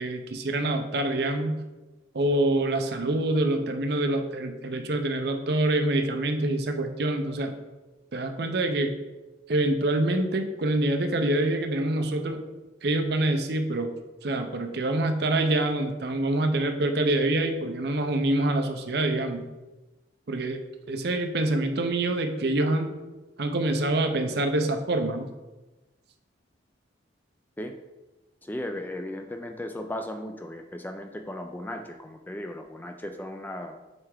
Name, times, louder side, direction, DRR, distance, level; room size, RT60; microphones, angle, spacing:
voice 1, 0.0-1.6 2.1-7.5 8.1-8.9 9.5-12.4 12.8-13.9 14.2-19.5 20.3-20.6 20.9-22.9 23.4-25.3, right 2 dB, 55° right, 6 dB, 0.6 m, -26 dB
voice 2, 28.4-33.8, left 1 dB, 10° left, 5 dB, 0.3 m, -36 dB
7.9 x 3.3 x 3.6 m, 1.1 s
head